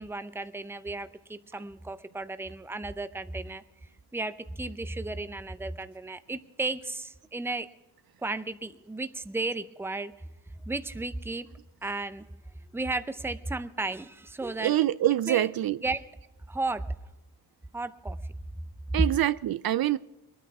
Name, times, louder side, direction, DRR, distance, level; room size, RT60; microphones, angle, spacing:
voice 1, 0.0-3.6 4.1-7.7 8.2-10.1 10.7-11.5 11.8-12.3 12.7-14.9 15.3-15.5 15.8-16.1 16.5-16.8 17.7-18.2 18.9-19.1, right 2 dB, 5° right, 0.6 m, -33 dB
voice 2, 14.6-15.8 18.9-20.0, right 13 dB, 65° right, 0.5 m, -25 dB
21.5 x 9.4 x 4.7 m
cardioid pair, 75°, 40 cm